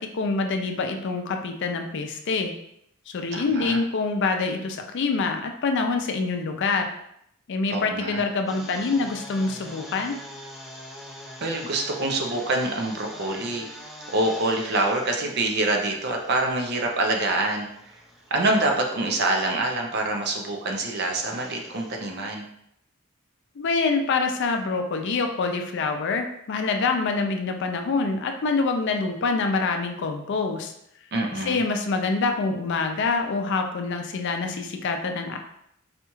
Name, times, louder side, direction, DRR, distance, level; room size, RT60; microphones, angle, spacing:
voice 1, 0.0-2.5 3.1-6.9 7.5-10.2 23.6-30.7 31.3-35.4, left 4 dB, 55° left, 5 dB, 0.4 m, -26 dB
voice 2, 3.3-3.8 7.7-8.2 11.4-13.7 14.1-17.7 18.3-22.5 31.1-31.6, right 2 dB, 50° right, 2 dB, 0.5 m, -25 dB
sound 1, 8.5-22.0, equal, ahead, 0.6 m, -44 dB
4.1 x 2.3 x 3.0 m, 0.75 s
head